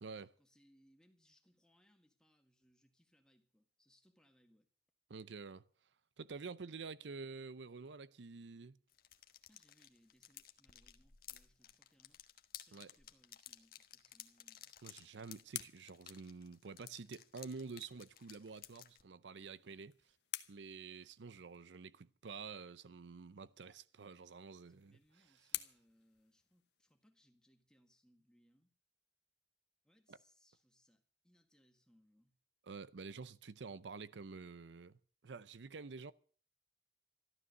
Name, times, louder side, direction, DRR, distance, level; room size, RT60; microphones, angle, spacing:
voice 1, 0.2-4.7 9.5-12.2 12.7-14.7 24.6-28.7 29.8-32.3, equal, 5° left, 1.8 m, -72 dB
voice 2, 5.1-5.6 6.2-8.8 12.7-12.9 14.8-20.0 20.5-25.0 30.1-30.2 32.7-35.0 35.2-36.1, right 4 dB, 90° right, 0.6 m, -49 dB
sound 1, 8.9-19.0, left 11 dB, 55° left, 1.2 m, -56 dB
sound 2, 14.6-17.1 19.2-21.7 23.9-27.0, left 14 dB, 75° left, 1.0 m, -51 dB
14.0 x 12.5 x 6.6 m
head